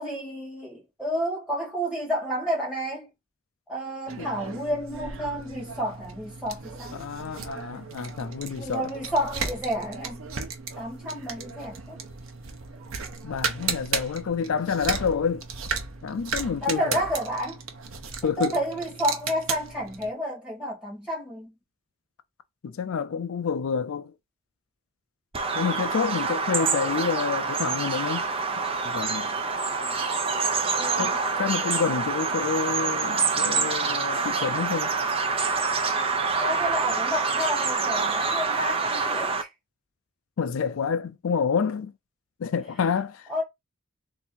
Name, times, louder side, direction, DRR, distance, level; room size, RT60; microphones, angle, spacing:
voice 1, 0.0-3.1 3.7-7.0 8.5-10.3 10.8-12.0 16.6-17.6 18.2-21.5 30.7-31.2 36.4-39.5 43.3-43.4, equal, 5° right, 2.1 m, -30 dB
sound 1, 4.1-20.1, right 5 dB, 85° right, 0.9 m, -35 dB
voice 2, 6.9-8.9 13.2-15.5 16.0-17.0 18.2-18.6 22.6-24.1 25.5-28.3 28.8-29.3 31.0-34.9 40.4-41.9 42.4-43.4, left 6 dB, 80° left, 0.4 m, -28 dB
Bird vocalization bird call bird song, 25.3-39.4, right 4 dB, 25° right, 0.6 m, -26 dB
3.5 x 2.7 x 4.3 m
head